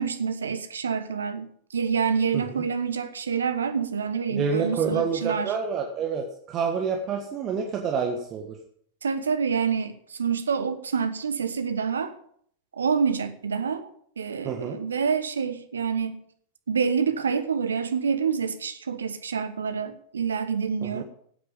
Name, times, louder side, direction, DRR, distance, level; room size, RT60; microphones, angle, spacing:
voice 1, 0.0-5.5 9.0-12.1 12.8-13.9 14.2-16.2 16.7-21.0, right 6 dB, 70° right, 1.2 m, -27 dB
voice 2, 4.3-8.6 14.4-14.8 20.8-21.0, right 6 dB, 30° right, 1.6 m, -28 dB
15.5 x 8.9 x 5.4 m
figure-of-eight pair, 90°, 0 cm